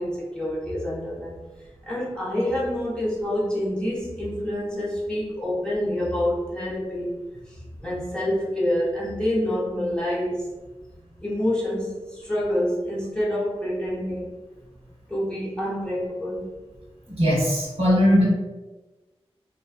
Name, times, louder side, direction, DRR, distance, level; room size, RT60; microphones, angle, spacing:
voice 1, 0.0-1.4 1.9-7.2 7.5-7.6 7.8-10.5 11.2-14.4 15.1-16.5, left 1 dB, 10° left, -7 dB, 0.8 m, -27 dB
voice 2, 17.2-18.3, equal, 70° right, -6 dB, 1.0 m, -19 dB
2.5 x 2.2 x 2.4 m, 1.2 s
wide cardioid pair, 75°, 11 cm